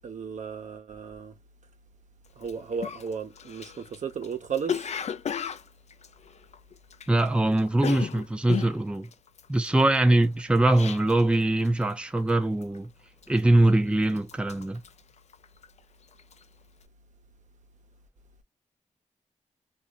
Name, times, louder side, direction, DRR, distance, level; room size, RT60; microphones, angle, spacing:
voice 1, 0.0-1.3 2.4-4.9, right 6 dB, 70° right, 1.0 m, -34 dB
Cough, 2.4-2.5 2.8-7.3 7.5-11.4 11.6-12.0 12.3-12.8 13.2-13.8 14.1-15.8 16.1-16.4, left 7 dB, 60° left, 0.5 m, -35 dB
voice 2, 7.1-9.1 9.5-12.9 13.3-14.8, right 1 dB, 10° right, 0.6 m, -22 dB
5.1 x 2.7 x 2.4 m
wide cardioid pair, 100°, 13 cm